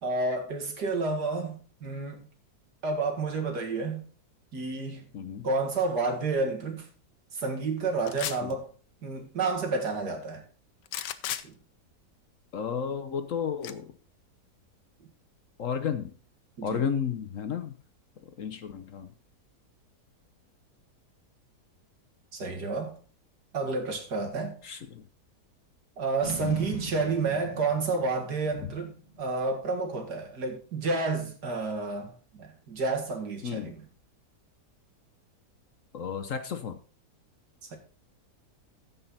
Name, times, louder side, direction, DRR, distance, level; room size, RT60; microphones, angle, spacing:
voice 1, 0.0-2.3 2.8-4.0 4.5-5.1 5.4-6.9 7.3-8.7 9.0-10.4 11.4-11.5 16.6-16.8 22.3-22.9 23.5-24.6 26.0-28.9 29.2-33.8 37.7-37.8, right 3 dB, 75° right, 2.5 m, -30 dB
voice 2, 5.1-5.5 8.4-8.5 12.5-13.9 15.6-16.1 16.6-17.7 18.4-19.1 24.6-25.0 26.4-26.6 33.4-33.7 35.9-36.8, left 7 dB, 60° left, 1.0 m, -32 dB
sound 1, 8.1-8.5 10.9-11.4 13.6-13.7, left 11 dB, 85° left, 1.3 m, -33 dB
Boom, 26.2-29.5, right 2 dB, 25° right, 3.6 m, -40 dB
14.5 x 5.5 x 4.1 m
omnidirectional pair, 1.8 m